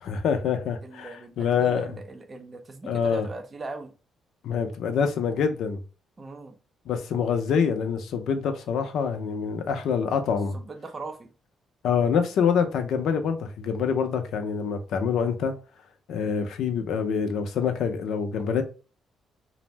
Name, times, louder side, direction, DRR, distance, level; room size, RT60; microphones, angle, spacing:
voice 1, 0.0-1.9 2.9-3.3 4.4-5.8 6.9-10.6 11.8-15.6 16.1-18.6, left 6 dB, 75° left, 0.5 m, -26 dB
voice 2, 0.8-3.9 6.2-6.6 10.5-11.3, right 3 dB, 35° right, 0.6 m, -40 dB
2.6 x 2.0 x 3.1 m
cardioid pair, 90°, 0 cm